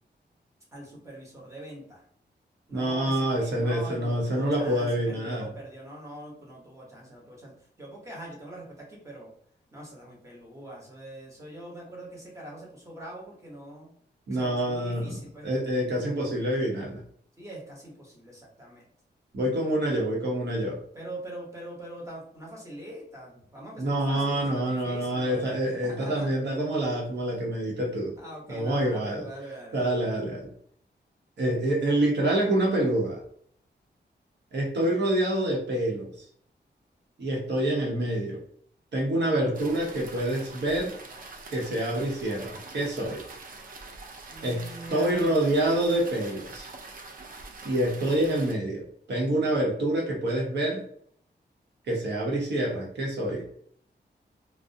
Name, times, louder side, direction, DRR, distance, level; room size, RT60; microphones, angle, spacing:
voice 1, 0.7-2.0 2.7-9.3 9.7-13.9 14.3-15.5 17.4-18.8 20.9-25.5 25.8-26.3 28.2-29.9 44.3-45.6, right 1 dB, 15° right, -3 dB, 0.8 m, -43 dB
voice 2, 2.7-5.5 14.3-15.2 15.4-17.0 19.3-20.8 23.8-28.2 28.5-29.2 29.7-30.5 31.4-33.2 34.5-36.3 37.2-38.4 38.9-40.9 41.5-43.2 44.4-44.6 44.9-46.7 47.6-50.8 51.9-53.4, right 1 dB, 70° right, -2 dB, 0.8 m, -27 dB
sound 1, 39.5-48.5, right 3 dB, 50° right, 0.4 m, -44 dB
2.4 x 2.0 x 2.6 m, 0.63 s
wide cardioid pair, 155°, 18 cm